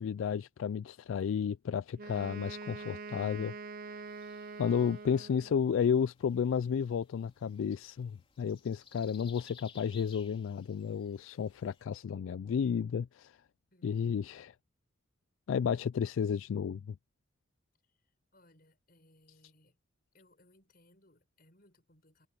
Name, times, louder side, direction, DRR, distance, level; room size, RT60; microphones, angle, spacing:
voice 1, 0.0-3.5 3.9-4.0 4.6-13.4 13.8-14.5 15.5-17.0, left 7 dB, 75° left, 0.3 m, -32 dB
Wind instrument woodwind instrument, 2.0-5.7, right 4 dB, 45° right, 0.6 m, -44 dB
sound 1, 4.1-11.8, left 6 dB, 25° left, 3.5 m, -59 dB
voice 2, 13.7-14.3 18.3-19.8 20.1-22.3, left 1 dB, 45° left, 6.9 m, -65 dB
head